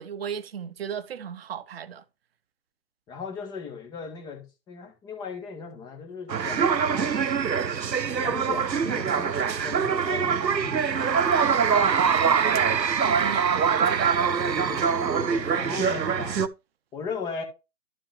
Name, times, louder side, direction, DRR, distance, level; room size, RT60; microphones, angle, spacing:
voice 1, 0.0-2.0 12.2-12.8 13.0-14.2, right 8 dB, 40° right, 0.9 m, -36 dB
voice 2, 3.1-7.2 8.2-11.2 14.2-16.4 16.9-17.4, left 5 dB, 10° left, 1.1 m, -38 dB
sound 1, 6.3-16.5, right 6 dB, 85° right, 0.9 m, -24 dB
11.5 x 5.5 x 3.3 m
figure-of-eight pair, 135°, 49 cm